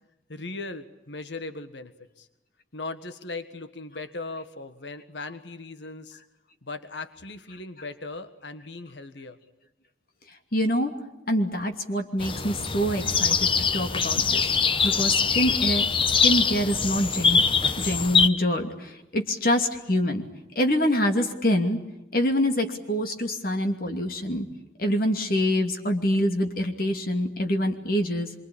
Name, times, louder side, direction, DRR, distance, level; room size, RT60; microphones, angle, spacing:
voice 1, 0.3-2.3 2.7-6.2 6.6-9.4, left 3 dB, 80° left, 10 dB, 1.6 m, -38 dB
voice 2, 10.5-10.9 11.3-14.4 14.8-15.9 16.2-17.4 17.8-20.3 20.5-21.8 22.1-24.5 24.8-28.3, equal, 50° left, 4 dB, 2.7 m, -25 dB
sound 1, 12.2-18.3, left 5 dB, 30° left, 1.0 m, -23 dB
26.5 x 25.0 x 8.7 m, 0.93 s
head